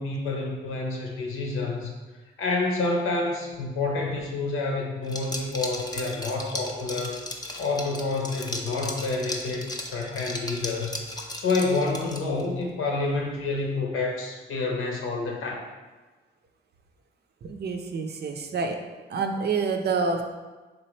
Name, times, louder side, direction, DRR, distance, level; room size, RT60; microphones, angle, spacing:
voice 1, 0.0-1.9 2.4-7.2 7.6-11.0 11.3-15.6, left 3 dB, 75° left, 0 dB, 0.9 m, -28 dB
Liquid, 5.1-12.5, left 1 dB, 20° left, 0.6 m, -36 dB
voice 2, 17.4-18.8 19.1-20.2, right 4 dB, 50° right, 5 dB, 0.5 m, -27 dB
3.9 x 2.9 x 3.1 m, 1.3 s
supercardioid pair, 60°, 21 cm